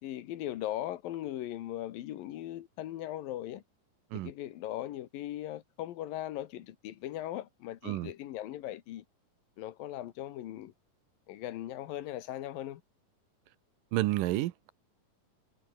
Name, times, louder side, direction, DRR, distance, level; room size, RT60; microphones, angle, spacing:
voice 1, 0.0-3.6 4.1-9.0 9.6-10.7 11.3-12.8, left 13 dB, 90° left, 3.1 m, -39 dB
voice 2, 13.9-14.7, right 16 dB, 80° right, 2.6 m, -30 dB
omnidirectional pair, 3.9 m